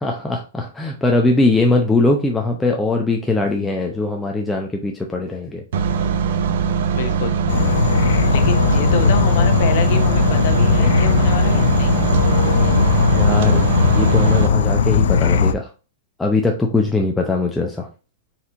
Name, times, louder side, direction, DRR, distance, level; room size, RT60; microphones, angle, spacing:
voice 1, 0.0-5.6 13.1-13.6 13.9-15.7 16.2-17.9, left 2 dB, 5° left, 1 dB, 0.4 m, -20 dB
sound 1, 5.7-14.5, right 6 dB, 65° right, 0.6 m, -21 dB
voice 2, 6.9-7.4 8.3-12.0, left 8 dB, 50° left, 6 dB, 0.9 m, -27 dB
Insect / Frog, 7.5-15.5, left 6 dB, 75° left, 0.4 m, -17 dB
4.3 x 4.0 x 2.4 m, 0.33 s
hypercardioid pair, 155°, 0 cm